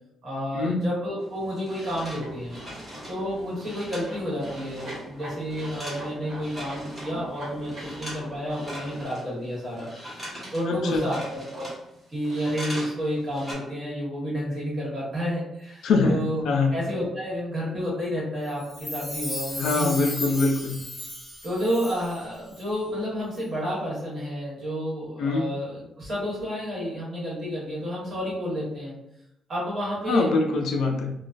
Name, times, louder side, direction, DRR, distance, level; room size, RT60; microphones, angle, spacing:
voice 1, 0.2-2.5 3.1-9.9 10.2-11.7 12.1-16.4 16.7-19.9 21.4-28.9 29.5-30.3, equal, 35° right, -6 dB, 1.2 m, -30 dB
sound 1, 1.2-5.1 5.3-7.2 7.5-8.2 8.5-13.0 13.2-13.5, equal, 15° right, 1.1 m, -40 dB
sound 2, 1.9-9.0, right 1 dB, 75° right, 1.1 m, -42 dB
voice 2, 10.7-11.0 15.8-16.8 19.6-20.8 25.2-25.5 30.1-31.1, left 3 dB, 65° left, 3 dB, 0.4 m, -23 dB
Chime, 18.6-22.2 22.5-22.6, left 1 dB, 15° left, 0.7 m, -35 dB
2.3 x 2.2 x 2.4 m, 0.83 s
cardioid pair, 145°, 0 cm